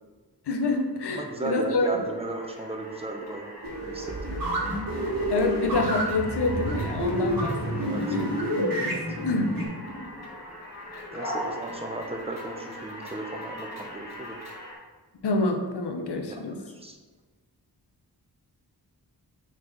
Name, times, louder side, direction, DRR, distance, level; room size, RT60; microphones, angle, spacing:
voice 1, 0.5-2.0 5.3-8.3 8.6-9.5 10.9-11.0 15.2-16.6, left 2 dB, 80° left, 5 dB, 0.8 m, -27 dB
sound 1, 1.1-14.7, left 1 dB, 40° left, 1.4 m, -40 dB
voice 2, 1.1-3.5 3.8-4.5 7.8-8.2 8.9-9.2 11.1-14.4 16.2-17.0, right 2 dB, 15° right, 2 dB, 0.8 m, -36 dB
sound 2, 3.6-9.6, right 1 dB, 55° right, 1.5 m, -29 dB
5.9 x 4.6 x 3.9 m, 1.3 s
wide cardioid pair, 115°, 40 cm